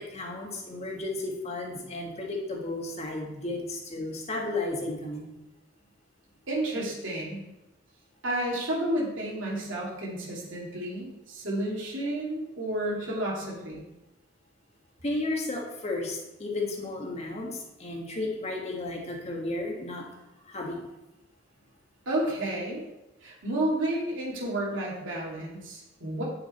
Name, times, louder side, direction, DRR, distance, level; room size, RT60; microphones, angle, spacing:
voice 1, 0.0-5.3 15.0-20.0 20.5-20.8, left 2 dB, 35° left, 0 dB, 1.8 m, -33 dB
voice 2, 6.5-7.4 8.2-13.8 22.1-22.8 23.2-26.2, right 1 dB, 80° right, -4 dB, 2.6 m, -31 dB
8.9 x 7.1 x 4.4 m, 0.97 s
head